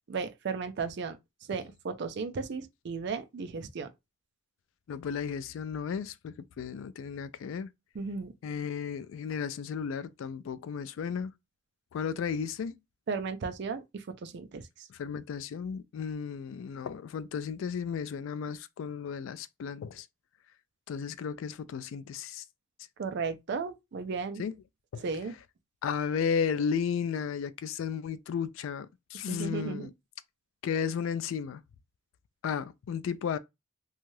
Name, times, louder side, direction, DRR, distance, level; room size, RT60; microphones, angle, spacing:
voice 1, 0.1-1.2 1.5-3.9 7.9-8.3 13.1-14.6 23.0-24.4 25.0-25.3 29.3-29.9, right 5 dB, 60° right, 0.4 m, -35 dB
voice 2, 4.9-7.7 8.4-11.3 11.9-12.7 14.9-20.1 20.9-22.4 24.4-24.5 24.9-25.0 25.8-29.9 30.6-31.6 32.4-33.4, left 7 dB, 75° left, 0.3 m, -34 dB
2.6 x 2.3 x 3.1 m
head